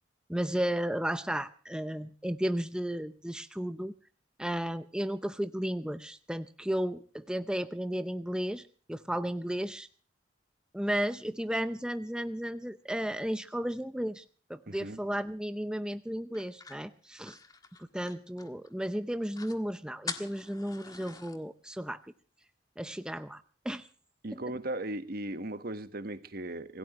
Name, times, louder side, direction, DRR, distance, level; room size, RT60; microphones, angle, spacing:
voice 1, 0.3-3.9 4.4-8.6 8.9-9.9 10.7-14.2 14.5-17.4 17.8-22.1 22.8-23.9 24.3-24.4, equal, 5° right, 0.7 m, -34 dB
voice 2, 14.7-15.0 24.2-26.8, right 1 dB, 55° right, 1.4 m, -37 dB
sound 1, 16.3-18.7 19.0-19.1 19.3-19.6 20.1-21.4, left 4 dB, 20° left, 1.6 m, -44 dB
26.0 x 17.0 x 3.1 m
head